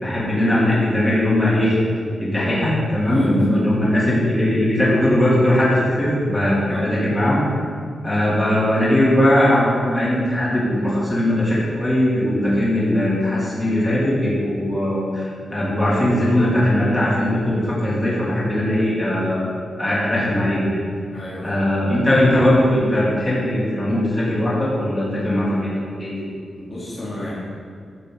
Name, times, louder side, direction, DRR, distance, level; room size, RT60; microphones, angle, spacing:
voice 1, 0.0-1.8 2.2-7.4 8.0-19.5 19.8-20.8 21.4-26.1, left 1 dB, 15° left, -8 dB, 3.1 m, -19 dB
voice 2, 3.0-3.7 6.7-6.9 21.1-21.7 26.6-27.3, left 1 dB, 35° left, -9 dB, 2.5 m, -33 dB
13.5 x 9.0 x 4.0 m, 2.3 s
wide cardioid pair, 180°, 0 cm